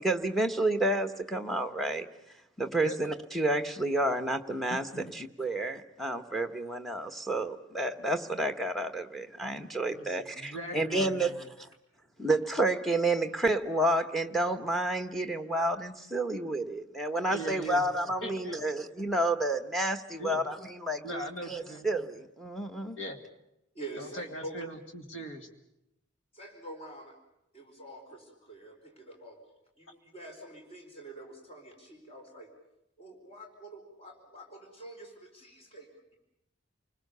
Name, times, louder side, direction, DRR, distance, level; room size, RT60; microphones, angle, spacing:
voice 1, 0.0-2.1 2.6-11.3 11.6-11.7 12.2-23.0, right 1 dB, ahead, 7 dB, 1.2 m, -30 dB
voice 2, 4.7-5.1 9.9-11.5 17.3-17.8 18.2-18.6 20.2-20.4 21.0-21.9 23.0-23.2 24.0-25.5, equal, 80° left, 4 dB, 2.3 m, -40 dB
voice 3, 23.7-24.6 26.3-27.2 27.5-29.4 29.8-32.5 33.0-36.2, right 1 dB, 30° left, 1 dB, 4.6 m, -46 dB
29.0 x 20.5 x 6.9 m, 0.85 s
head